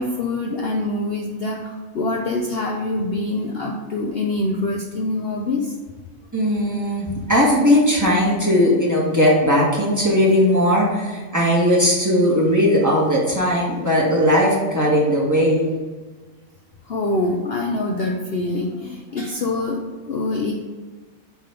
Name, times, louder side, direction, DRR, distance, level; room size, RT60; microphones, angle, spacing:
voice 1, 0.0-5.7 16.8-20.5, left 2 dB, 50° left, 0 dB, 0.9 m, -25 dB
voice 2, 6.3-15.7, equal, 10° right, -5 dB, 1.8 m, -18 dB
8.2 x 4.0 x 5.2 m, 1.3 s
omnidirectional pair, 1.5 m